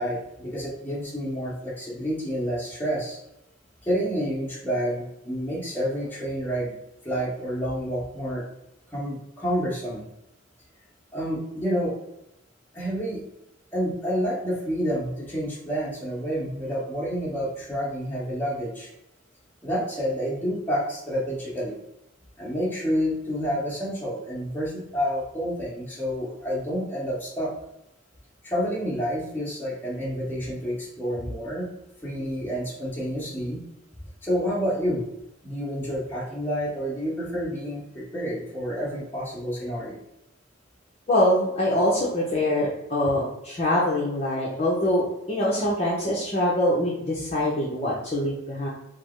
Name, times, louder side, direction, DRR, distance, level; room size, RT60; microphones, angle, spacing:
voice 1, 0.0-3.2 3.8-6.7 7.0-8.4 8.9-10.0 11.1-11.9 12.7-13.2 13.7-18.9 19.6-21.7 22.4-27.5 28.4-31.7 32.0-33.6 34.2-35.0 35.4-40.0, equal, 10° left, -7 dB, 1.5 m, -29 dB
voice 2, 41.1-48.7, left 1 dB, 35° left, -5 dB, 0.8 m, -24 dB
5.0 x 2.1 x 4.4 m, 0.87 s
head